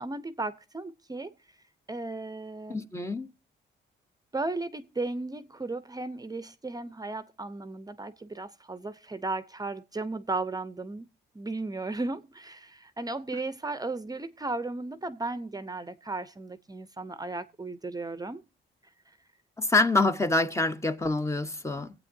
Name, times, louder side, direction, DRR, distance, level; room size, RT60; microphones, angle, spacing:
voice 1, 0.0-1.3 1.9-2.9 4.3-11.1 11.3-18.4, right 2 dB, 20° right, 0.8 m, -35 dB
voice 2, 2.7-3.3 19.6-21.9, left 2 dB, 15° left, 1.0 m, -26 dB
25.5 x 8.4 x 2.7 m
cardioid pair, 90°, 20 cm